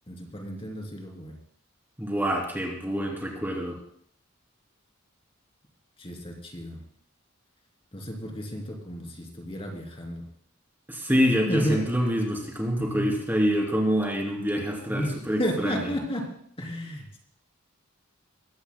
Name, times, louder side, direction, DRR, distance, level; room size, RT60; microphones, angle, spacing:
voice 1, 0.1-1.4 6.0-6.8 7.9-10.2 11.5-11.8 12.8-13.1 14.9-15.1 15.4-16.3 16.6-17.2, equal, 30° left, 0 dB, 3.0 m, -32 dB
voice 2, 2.0-3.8 10.9-16.0, equal, 10° right, -1 dB, 3.0 m, -26 dB
22.5 x 16.5 x 2.2 m, 0.63 s
head